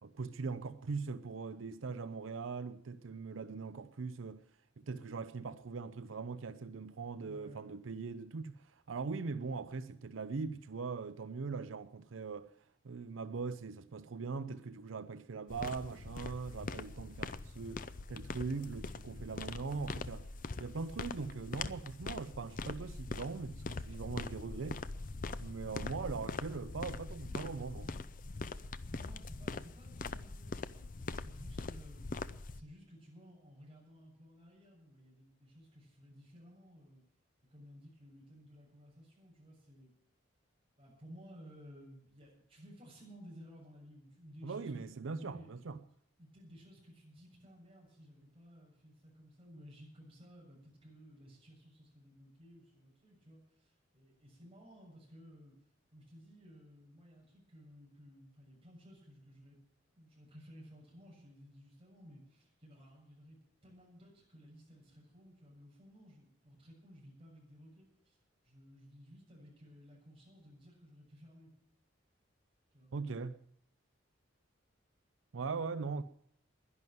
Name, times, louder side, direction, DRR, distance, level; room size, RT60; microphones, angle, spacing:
voice 1, 0.0-4.4 4.8-12.5 12.8-20.3 20.6-24.8 25.4-27.9 44.4-45.8 72.9-73.3 75.3-76.0, right 4 dB, 85° right, 0.6 m, -41 dB
voice 2, 7.2-7.7 28.5-32.2 32.5-37.0 37.5-39.9 40.8-44.8 45.1-45.5 46.2-55.6 55.9-59.6 59.9-71.5 72.7-72.9, equal, 25° right, 7.0 m, -57 dB
sound 1, 15.5-32.6, left 3 dB, 45° left, 0.6 m, -43 dB
11.0 x 11.0 x 9.2 m
head